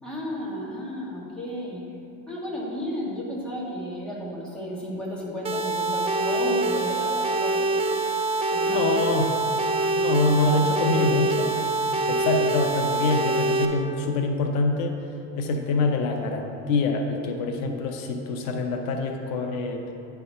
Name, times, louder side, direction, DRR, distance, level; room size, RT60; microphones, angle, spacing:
voice 1, 0.0-1.9 2.3-7.7 8.5-8.9 10.5-11.2, equal, 5° left, -7 dB, 1.8 m, -33 dB
sound 1, 5.4-13.6, right 2 dB, 20° right, 0.3 m, -25 dB
voice 2, 8.7-9.3 10.0-11.5 12.1-15.0 15.4-19.9, left 3 dB, 85° left, 4 dB, 0.8 m, -25 dB
10.0 x 3.5 x 5.6 m, 2.7 s
cardioid pair, 135°, 32 cm